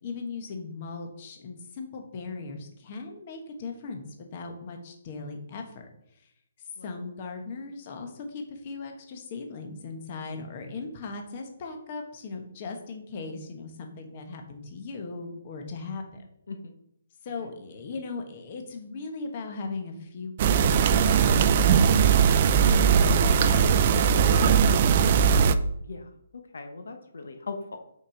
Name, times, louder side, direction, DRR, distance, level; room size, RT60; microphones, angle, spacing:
voice 1, 0.0-4.0 4.3-5.8 6.8-16.2 17.2-24.9, left 4 dB, 35° left, 4 dB, 1.3 m, -38 dB
sound 1, 20.4-25.5, right 7 dB, 40° right, 0.4 m, -20 dB
voice 2, 26.5-27.8, left 3 dB, 80° left, 5 dB, 1.0 m, -39 dB
5.6 x 4.9 x 5.0 m, 0.75 s
hypercardioid pair, 155°, 0 cm